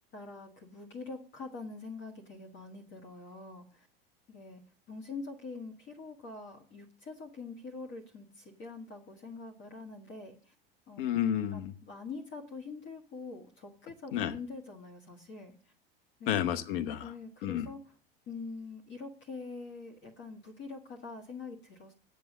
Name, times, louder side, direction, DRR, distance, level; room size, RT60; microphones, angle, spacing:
voice 1, 0.1-3.9 4.3-4.6 4.9-10.5 10.9-11.0 11.5-15.5 16.2-16.4 17.0-17.8 18.3-21.9, left 4 dB, 40° left, 2 dB, 1.7 m, -44 dB
voice 2, 11.0-11.7 14.1-14.3 16.3-17.1 17.4-17.7, left 10 dB, 65° left, 11 dB, 1.1 m, -31 dB
8.2 x 6.7 x 7.3 m, 0.42 s
hypercardioid pair, 90°, 29 cm